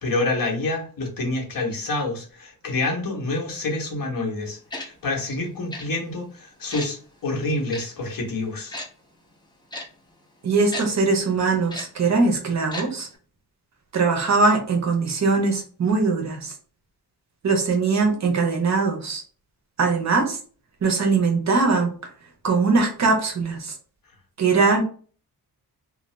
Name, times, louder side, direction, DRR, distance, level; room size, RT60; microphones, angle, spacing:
voice 1, 0.0-8.8, left 2 dB, 60° left, 0 dB, 1.0 m, -27 dB
Tick-tock, 4.7-4.9 5.7-5.9 6.7-6.9 7.7-7.8 8.7-8.9 9.7-9.9 10.7-10.9 11.7-11.9 12.7-12.9 13.1-13.2, left 1 dB, 10° left, 0.5 m, -33 dB
voice 2, 10.4-13.1 13.9-16.5 17.4-19.2 19.8-20.4 20.8-21.9 22.4-23.7 24.4-24.8, right 4 dB, 45° right, 3 dB, 0.7 m, -21 dB
2.7 x 2.2 x 3.1 m, 0.42 s
wide cardioid pair, 145°, 38 cm